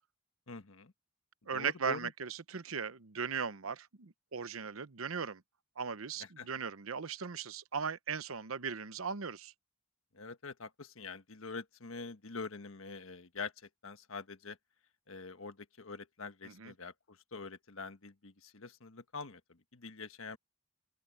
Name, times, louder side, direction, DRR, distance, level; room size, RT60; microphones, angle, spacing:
voice 1, 0.5-0.9 1.5-2.1 6.2-6.5 10.1-14.6 15.1-20.4, left 4 dB, 80° left, 1.4 m, -45 dB
voice 2, 1.5-5.4 5.8-9.5 16.4-16.7, right 6 dB, 85° right, 0.9 m, -38 dB
open air
head